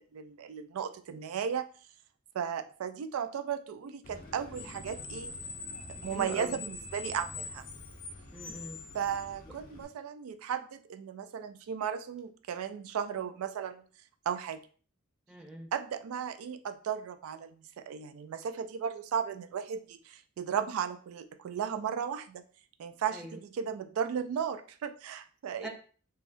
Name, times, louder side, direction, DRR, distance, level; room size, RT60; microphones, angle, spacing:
voice 1, 0.0-1.7 2.3-5.3 6.0-7.6 8.9-13.8 14.3-14.6 15.7-22.4 22.8-25.7, right 8 dB, 90° right, 10 dB, 0.3 m, -35 dB
Screech, 4.0-9.8, left 3 dB, 45° left, 0.6 m, -44 dB
voice 2, 6.1-6.6 8.3-8.8 15.3-15.7 23.1-23.3 25.6-25.7, right 1 dB, 5° right, 0 dB, 0.5 m, -42 dB
3.3 x 2.3 x 2.5 m, 0.41 s
head